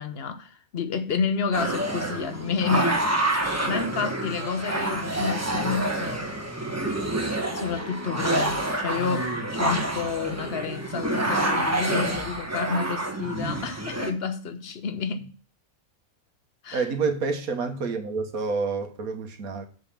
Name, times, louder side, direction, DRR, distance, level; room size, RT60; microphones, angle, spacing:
voice 1, 0.0-3.0 3.6-6.3 7.5-15.3 16.6-16.9, left 5 dB, 50° left, 1.0 m, -30 dB
sound 1, 1.5-14.1, right 1 dB, 10° right, 1.1 m, -27 dB
voice 2, 16.7-19.7, right 4 dB, 85° right, 1.6 m, -28 dB
7.0 x 5.5 x 6.9 m
omnidirectional pair, 1.5 m